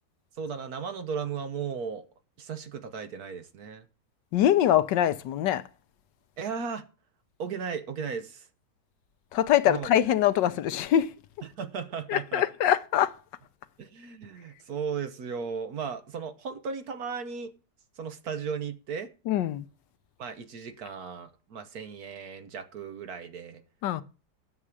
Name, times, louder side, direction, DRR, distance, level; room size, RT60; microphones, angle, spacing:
voice 1, 0.4-2.1 2.4-3.9 6.4-6.8 7.4-8.5 9.6-9.9 11.6-12.4 13.8-17.5 18.0-19.1 20.2-23.6, right 6 dB, 65° right, 1.4 m, -36 dB
voice 2, 4.3-5.7 9.3-11.1 12.1-13.2 19.3-19.7 23.8-24.0, left 11 dB, 85° left, 1.4 m, -23 dB
9.7 x 7.5 x 4.8 m
omnidirectional pair, 1.9 m